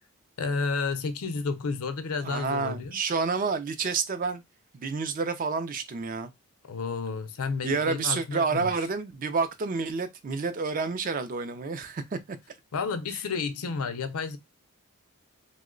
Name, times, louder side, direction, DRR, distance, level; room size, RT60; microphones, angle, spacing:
voice 1, 0.4-3.0 6.7-8.7 12.7-14.4, left 4 dB, 80° left, 0.5 m, -31 dB
voice 2, 2.2-4.4 4.7-6.3 7.6-12.4 13.1-13.2, right 4 dB, 40° right, 0.4 m, -29 dB
2.9 x 2.0 x 3.7 m
head